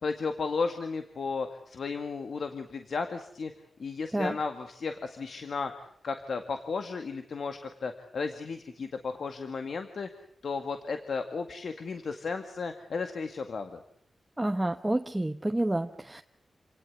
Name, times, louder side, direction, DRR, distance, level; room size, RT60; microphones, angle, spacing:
voice 1, 0.0-3.5 3.8-10.1 10.4-13.8, left 4 dB, 70° left, 7 dB, 2.0 m, -34 dB
voice 2, 14.4-16.2, right 1 dB, 15° right, 6 dB, 1.1 m, -29 dB
28.0 x 18.5 x 9.5 m, 0.66 s
wide cardioid pair, 95°, 0 cm